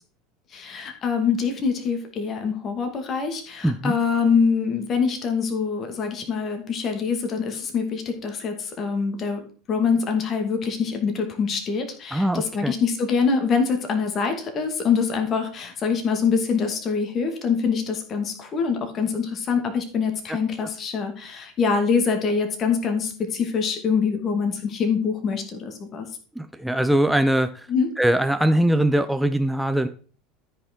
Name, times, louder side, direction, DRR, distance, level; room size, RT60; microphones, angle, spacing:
voice 1, 0.5-26.1 27.7-27.9, left 5 dB, 35° left, 5 dB, 2.3 m, -24 dB
voice 2, 3.6-3.9 12.1-12.7 26.4-27.7 28.0-29.9, right 1 dB, 5° right, 8 dB, 0.7 m, -21 dB
13.0 x 5.6 x 4.5 m, 0.40 s
figure-of-eight pair, 75°, 0 cm